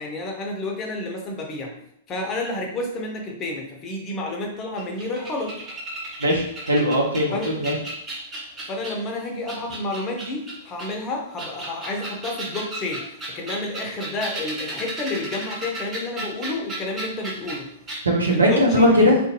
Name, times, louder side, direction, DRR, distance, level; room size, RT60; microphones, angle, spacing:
voice 1, 0.0-1.7 2.1-5.5 7.3-7.5 8.6-13.0 13.3-17.7 18.3-19.1, left 2 dB, 30° left, 1 dB, 0.6 m, -30 dB
sound 1, 4.8-9.1 9.5-10.9 11.3-17.6 17.9-18.0, right 2 dB, 20° right, 0.8 m, -34 dB
voice 2, 6.2-7.7 18.0-19.2, equal, 90° right, -1 dB, 0.6 m, -19 dB
2.5 x 2.2 x 2.7 m, 0.74 s
hypercardioid pair, 105°, 0 cm